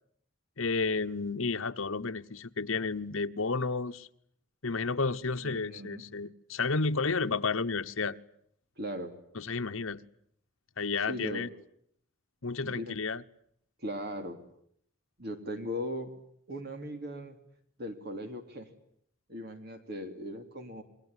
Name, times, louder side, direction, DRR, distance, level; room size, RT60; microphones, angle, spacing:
voice 1, 0.6-4.1 4.6-8.2 9.3-10.0 10.8-11.5 12.4-13.2, left 4 dB, 80° left, 1.1 m, -31 dB
voice 2, 5.4-6.0 8.8-9.1 11.1-11.5 12.6-13.0 13.8-14.4 15.2-16.1 16.5-17.4 17.8-18.7 19.3-20.8, equal, 50° right, 3.0 m, -38 dB
28.0 x 22.0 x 9.8 m
head